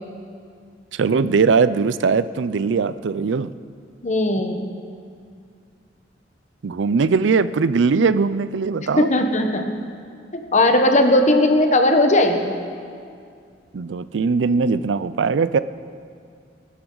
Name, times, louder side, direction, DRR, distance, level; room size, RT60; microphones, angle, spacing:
voice 1, 0.9-3.5 6.6-9.1 13.7-15.6, right 5 dB, 85° right, 15 dB, 0.4 m, -20 dB
voice 2, 4.0-4.7 9.0-9.7 10.3-12.6, left 1 dB, 40° left, 5 dB, 1.1 m, -18 dB
22.0 x 13.0 x 3.9 m, 2.3 s
head